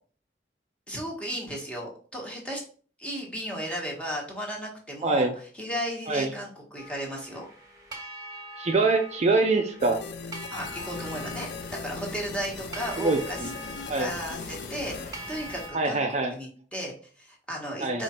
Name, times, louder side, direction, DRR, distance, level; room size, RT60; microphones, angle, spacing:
voice 1, 0.9-2.6 3.0-5.3 5.5-7.5 10.5-13.5 13.8-16.0 16.3-18.0, equal, 5° left, -1 dB, 1.2 m, -35 dB
voice 2, 5.0-5.3 6.1-6.3 8.6-10.0 13.0-13.5 13.9-14.1 15.7-16.4 17.8-18.0, right 3 dB, 40° right, 4 dB, 0.4 m, -24 dB
sound 1, 6.8-15.8, equal, 20° right, 1.3 m, -43 dB
sound 2, 9.8-15.1, left 5 dB, 70° left, 0.4 m, -39 dB
sound 3, 10.6-15.7, left 2 dB, 55° left, 0.9 m, -44 dB
4.8 x 2.5 x 4.2 m, 0.42 s
head